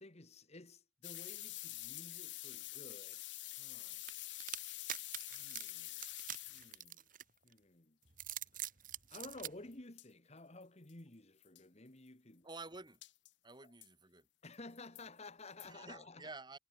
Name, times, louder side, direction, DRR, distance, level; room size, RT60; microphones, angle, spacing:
voice 1, 0.0-3.2 3.5-4.0 5.0-6.0 6.5-7.0 7.4-8.0 8.5-8.7 9.1-12.5 13.6-13.7 14.4-16.3, left 2 dB, 35° left, 1.8 m, -54 dB
sound 1, 1.0-6.9 9.7-9.8 10.0-10.1 10.6-10.7 10.9-11.0 11.4-11.6 13.0-13.3 13.8-13.9 14.5-15.0 15.6-15.7, left 17 dB, 75° left, 1.3 m, -47 dB
sound 2, 4.1-7.5 8.1-9.5, right 12 dB, 50° right, 2.0 m, -44 dB
voice 2, 12.4-13.0 13.4-14.3 15.6-16.6, right 3 dB, 25° right, 4.8 m, -50 dB
head